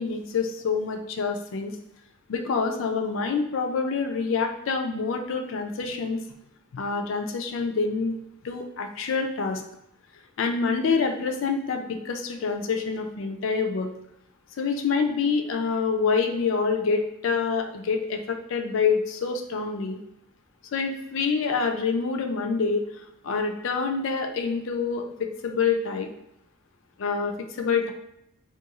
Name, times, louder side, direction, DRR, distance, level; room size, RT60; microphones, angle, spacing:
voice 1, 0.0-1.7 2.3-6.2 6.7-8.1 8.4-9.6 10.4-13.9 14.6-20.0 20.7-22.8 23.2-26.1 27.0-27.9, left 5 dB, 65° left, 4 dB, 0.4 m, -26 dB
2.5 x 2.3 x 2.8 m, 0.78 s
head